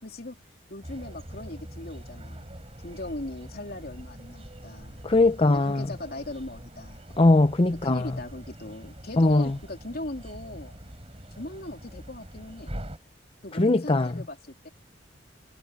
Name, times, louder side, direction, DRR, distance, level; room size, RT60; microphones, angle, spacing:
voice 1, 0.0-0.4 0.7-2.5 2.8-5.1 5.4-7.0 7.8-10.7 11.3-12.7 13.4-14.7, left 1 dB, 55° left, 3.4 m, -38 dB
sound 1, 0.8-13.0, equal, 30° right, 5.5 m, -44 dB
voice 2, 5.0-5.9 7.2-8.1 9.2-9.5 13.5-14.1, left 2 dB, 30° left, 0.6 m, -20 dB
head